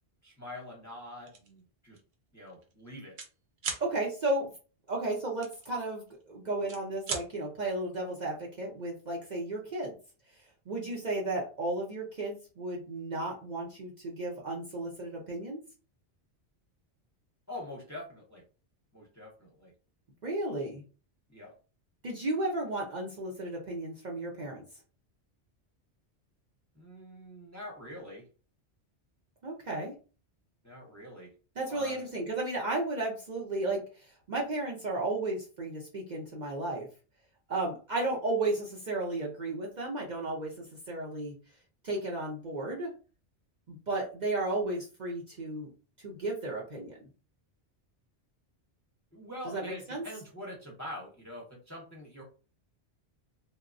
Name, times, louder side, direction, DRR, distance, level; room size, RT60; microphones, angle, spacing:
voice 1, 0.2-2.0 2.3-3.2 3.9-4.1 17.5-18.4 18.9-19.7 21.3-21.5 26.7-28.3 30.6-31.3 31.7-32.1 49.1-52.2, left 1 dB, 20° left, -2 dB, 0.6 m, -45 dB
sound 1, 1.3-1.5 2.0-2.1 2.4-3.3 3.6-3.9 5.4-6.2 6.6-7.3, right 5 dB, 75° right, 0.9 m, -37 dB
voice 2, 3.8-4.5 4.9-9.9 10.7-15.6 20.2-20.8 22.0-24.6 29.4-29.9 31.6-36.9 37.5-41.4 41.8-42.9 43.7-45.7 46.0-47.0 49.5-50.0, right 2 dB, 50° right, -2 dB, 0.6 m, -34 dB
3.0 x 2.2 x 2.5 m, 0.36 s
omnidirectional pair, 1.2 m